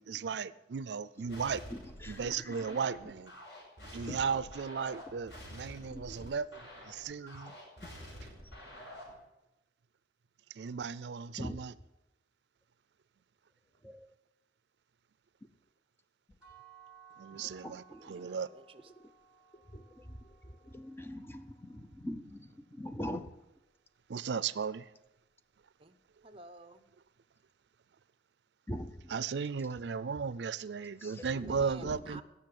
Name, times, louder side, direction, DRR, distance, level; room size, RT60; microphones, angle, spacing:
voice 1, 0.0-1.6 2.1-3.3 3.9-7.5 10.5-11.7 17.2-18.5 24.1-24.9 29.1-32.2, right 6 dB, 75° right, 0.4 m, -36 dB
sound 1, 1.3-9.2, equal, 90° left, 5.7 m, -49 dB
voice 2, 1.7-2.8 4.1-4.2 5.9-6.3 7.5-7.6 7.8-7.9 11.4-11.7 13.8-14.1 17.4-18.3 19.0-19.1 19.7-20.2 20.5-23.3 28.7-29.0 31.0-31.6, left 1 dB, 15° left, 0.6 m, -43 dB
sound 2, 16.4-22.2, right 7 dB, 5° right, 7.1 m, -60 dB
voice 3, 17.9-18.9 25.8-26.0 26.2-26.8 31.1-32.2, right 3 dB, 30° right, 0.8 m, -52 dB
16.5 x 6.8 x 8.5 m
head